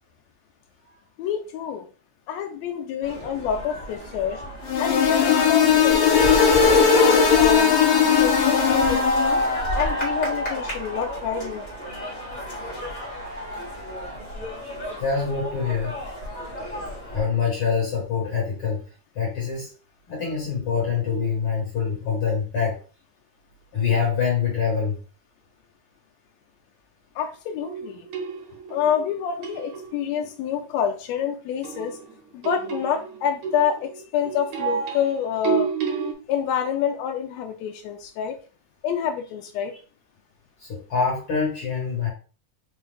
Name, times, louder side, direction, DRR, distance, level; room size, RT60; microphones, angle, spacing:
voice 1, 1.2-1.9 2.3-4.4 4.8-9.4 9.7-11.6 27.1-28.1 28.7-32.0 32.3-35.7 36.3-38.4 38.8-39.7, left 8 dB, 90° left, 4 dB, 1.5 m, -27 dB
sound 1, 3.0-17.2, left 1 dB, 30° left, 1.2 m, -30 dB
sound 2, 4.7-9.5, left 6 dB, 75° left, 1.8 m, -18 dB
voice 2, 15.0-16.0 17.1-18.8 19.2-19.7 20.1-22.8 23.7-25.0 40.6-42.1, left 6 dB, 50° left, -3 dB, 1.9 m, -25 dB
sound 3, 27.6-30.1 31.6-36.1, right 6 dB, 70° right, 2.1 m, -31 dB
5.3 x 2.3 x 3.3 m, 0.36 s
omnidirectional pair, 3.7 m